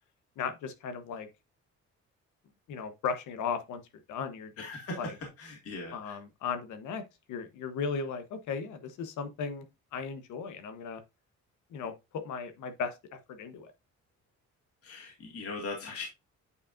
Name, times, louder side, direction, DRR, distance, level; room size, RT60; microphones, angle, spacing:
voice 1, 0.4-1.3 2.7-3.8 4.1-4.5 5.0-5.1 5.9-7.0 7.3-9.7 9.9-11.0 11.7-11.9 12.2-12.9 13.3-13.7, left 6 dB, 85° left, 1.0 m, -36 dB
voice 2, 4.6-6.2 14.8-16.0, left 3 dB, 50° left, 2.1 m, -40 dB
8.3 x 4.8 x 2.5 m
cardioid pair, 130°, 29 cm